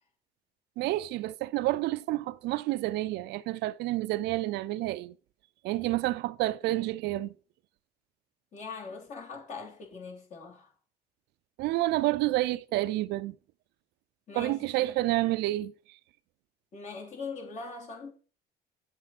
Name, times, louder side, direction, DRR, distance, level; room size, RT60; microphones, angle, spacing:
voice 1, 0.8-5.1 5.6-7.3 11.6-13.4 14.4-15.7, right 17 dB, 85° right, 0.5 m, -29 dB
voice 2, 8.5-10.7 14.3-15.0 16.7-18.1, left 4 dB, 45° left, 3.2 m, -41 dB
8.7 x 7.4 x 4.2 m
cardioid pair, 110°, 17 cm